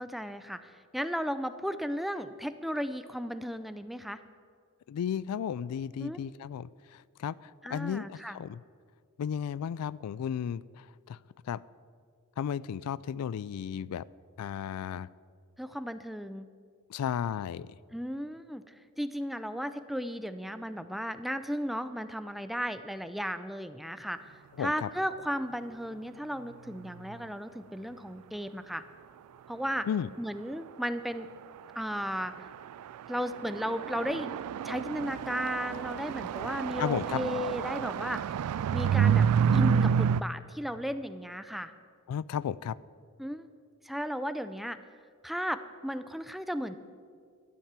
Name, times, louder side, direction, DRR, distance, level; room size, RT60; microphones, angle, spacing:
voice 1, 0.0-4.2 6.0-6.2 7.6-8.4 15.6-16.5 17.9-28.8 29.5-29.9 30.2-31.3 31.8-32.5 33.1-34.3 34.6-38.4 38.7-41.7 43.2-43.5 43.8-44.8 45.2-46.8, equal, ahead, 11 dB, 0.3 m, -35 dB
voice 2, 4.9-6.7 7.2-8.6 9.2-10.6 11.1-11.2 11.5-11.6 12.4-14.0 14.4-15.1 16.9-17.7 24.6-24.9 29.9-30.1 36.8-37.2 42.1-42.8, left 8 dB, 80° left, 21 dB, 0.3 m, -33 dB
sound 1, 32.0-32.1 32.3-32.8 33.1-40.2, right 7 dB, 90° right, 0.3 m, -28 dB
12.0 x 7.3 x 7.4 m, 2.1 s
head